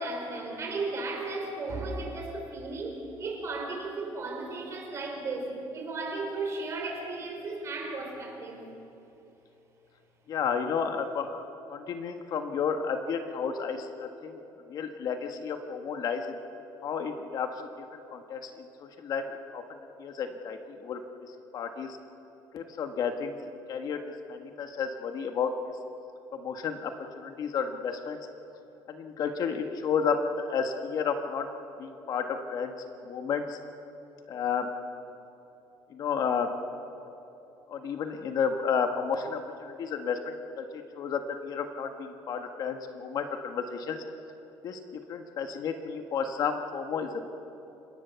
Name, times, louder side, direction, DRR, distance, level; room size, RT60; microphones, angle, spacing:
voice 1, 0.0-8.6, right 3 dB, 35° right, 1 dB, 5.0 m, -35 dB
voice 2, 10.3-11.4 11.7-14.4 14.7-16.4 16.8-17.5 18.1-18.5 18.8-19.6 20.0-21.0 21.5-22.0 22.5-24.0 24.3-25.7 26.3-28.2 28.9-31.5 31.8-32.7 33.0-33.6 34.3-34.7 35.9-36.5 37.7-44.0 44.6-44.8 45.1-47.3, left 6 dB, 50° left, 6 dB, 1.5 m, -32 dB
29.5 x 17.5 x 7.0 m, 3.0 s
cardioid pair, 150°, 9 cm